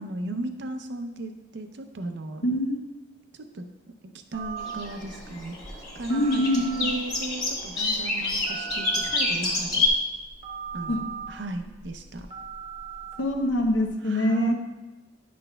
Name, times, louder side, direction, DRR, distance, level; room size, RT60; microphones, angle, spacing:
voice 1, 0.0-2.4 3.3-3.7 4.0-9.9 10.7-12.3 14.0-14.5, right 2 dB, 65° right, 7 dB, 0.6 m, -36 dB
voice 2, 2.4-2.8 6.1-6.9 10.9-11.0 13.2-14.5, left 1 dB, 85° left, 2 dB, 0.8 m, -24 dB
Telephone, 4.3-13.9, right 6 dB, 35° right, 1.0 m, -40 dB
sound 1, 4.6-9.9, left 3 dB, 25° left, 1.7 m, -29 dB
10.0 x 6.2 x 2.2 m, 1.1 s
head